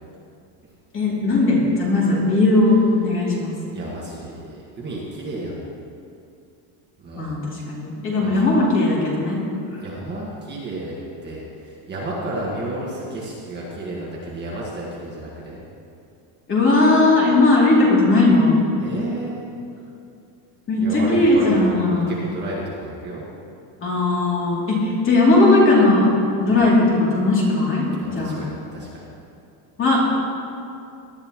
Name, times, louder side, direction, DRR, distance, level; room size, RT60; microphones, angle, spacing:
voice 1, 0.9-3.5 7.2-9.4 9.7-9.8 16.5-18.6 20.7-22.2 23.8-26.1 26.4-27.9 28.1-28.4 29.8-30.0, left 2 dB, 25° left, -5 dB, 2.7 m, -18 dB
voice 2, 3.7-5.6 7.0-7.3 8.2-8.4 9.8-10.9 11.2-15.6 18.8-19.6 20.8-21.6 21.9-23.2 26.4-26.5 28.0-29.0, right 1 dB, 20° right, -5 dB, 1.6 m, -32 dB
18.0 x 10.5 x 3.0 m, 2.5 s
cardioid pair, 165°, 47 cm